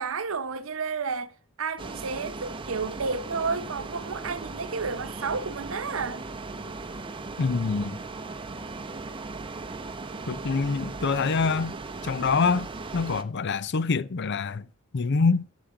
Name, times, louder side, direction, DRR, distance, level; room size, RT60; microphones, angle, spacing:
voice 1, 0.0-1.3 1.6-6.3, right 4 dB, 75° right, 0.9 m, -31 dB
sound 1, 1.8-13.2, right 3 dB, 25° right, 0.7 m, -38 dB
voice 2, 7.4-8.0 10.3-11.7 12.0-14.6 14.9-15.5, left 4 dB, 55° left, 0.6 m, -25 dB
10.0 x 6.3 x 5.8 m
head